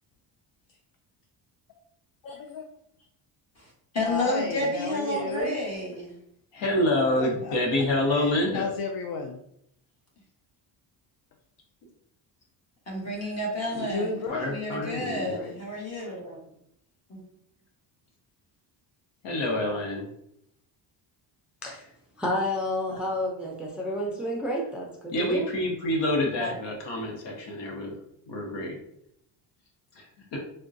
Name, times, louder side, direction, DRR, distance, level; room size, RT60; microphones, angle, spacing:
voice 1, 2.2-2.7 4.0-5.6 7.2-7.8 8.1-9.4 13.9-14.5 15.1-15.6 22.9-23.0, left 4 dB, 55° left, 3 dB, 0.5 m, -34 dB
voice 2, 3.9-6.2 8.4-8.5 12.9-14.1 14.5-16.4 17.1-17.2 26.4-26.6, left 1 dB, 35° left, -2 dB, 1.3 m, -30 dB
voice 3, 6.5-8.7 13.7-13.9 14.3-15.4 19.2-20.1 25.1-27.9 28.3-28.8 29.9-30.1 30.3-30.4, left 1 dB, 70° left, 1 dB, 1.0 m, -27 dB
voice 4, 21.6-21.9 22.2-25.5, left 1 dB, ahead, -2 dB, 0.4 m, -30 dB
3.6 x 2.2 x 2.5 m, 0.74 s
cardioid pair, 115°, 44 cm